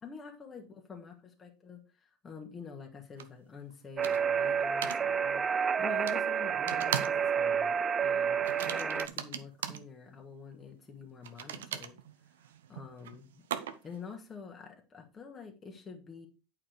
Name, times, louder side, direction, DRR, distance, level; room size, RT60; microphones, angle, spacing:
voice 1, 0.0-12.0 12.7-13.4 13.8-16.3, left 5 dB, 25° left, 1 dB, 2.1 m, -47 dB
sound 1, 3.2-3.3 4.0-4.4 4.8-5.0 6.1-6.2 6.7-7.2 7.5-7.8 8.4-9.8 11.2-14.0, right 9 dB, 85° right, 0.8 m, -38 dB
sound 2, 4.0-9.1, right 7 dB, 30° right, 0.5 m, -29 dB
8.8 x 4.9 x 4.7 m, 0.30 s
hypercardioid pair, 85°, 0 cm